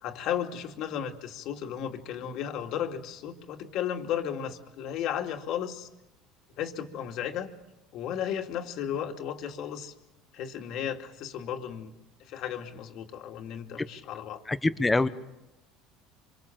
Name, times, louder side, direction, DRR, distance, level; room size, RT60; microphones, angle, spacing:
voice 1, 0.0-5.9 6.6-7.5 7.9-9.9 10.3-11.9 12.2-14.4, left 9 dB, 60° left, 4 dB, 2.6 m, -34 dB
voice 2, 14.5-15.1, left 2 dB, 15° left, 12 dB, 1.2 m, -24 dB
26.0 x 25.0 x 7.6 m, 0.96 s
supercardioid pair, 100°, 0 cm